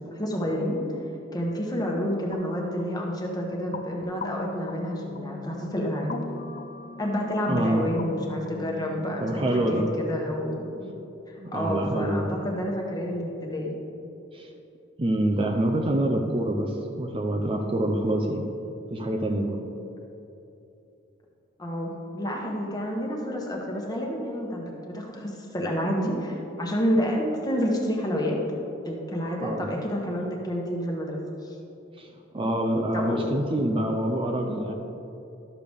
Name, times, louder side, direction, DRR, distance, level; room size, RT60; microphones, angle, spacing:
voice 1, 0.0-0.9 1.3-6.1 7.0-10.9 11.3-13.8 21.6-28.4 28.8-31.6 32.9-33.2, equal, 20° left, -1 dB, 1.1 m, -29 dB
sound 1, 2.3-9.9, left 4 dB, 40° left, 0.4 m, -39 dB
voice 2, 7.5-7.9 9.2-9.9 11.4-12.4 14.3-14.5 15.0-18.5 18.9-19.6 29.4-29.7 32.0-34.7, right 1 dB, 25° right, 2 dB, 0.5 m, -26 dB
12.0 x 6.8 x 3.5 m, 2.9 s
head